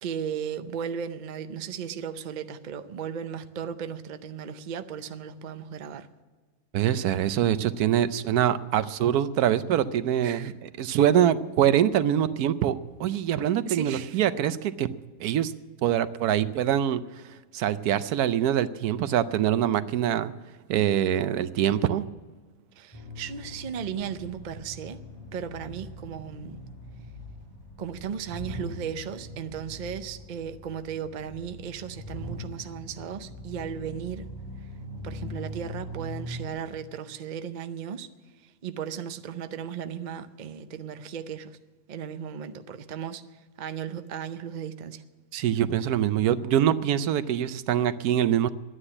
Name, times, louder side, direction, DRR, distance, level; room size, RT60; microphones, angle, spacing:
voice 1, 0.0-6.1 10.2-10.5 13.7-14.2 22.8-25.0 25.3-26.6 27.8-34.2 35.0-38.1 38.6-41.6 41.9-43.2 43.6-45.0, right 8 dB, 55° right, 0.5 m, -36 dB
voice 2, 6.7-14.9 15.2-15.5 15.8-17.0 17.5-20.3 20.7-22.1 45.3-48.5, right 10 dB, 75° right, 1.1 m, -24 dB
sound 1, 22.9-36.5, equal, 20° left, 3.7 m, -41 dB
11.5 x 9.7 x 9.8 m
omnidirectional pair, 1.7 m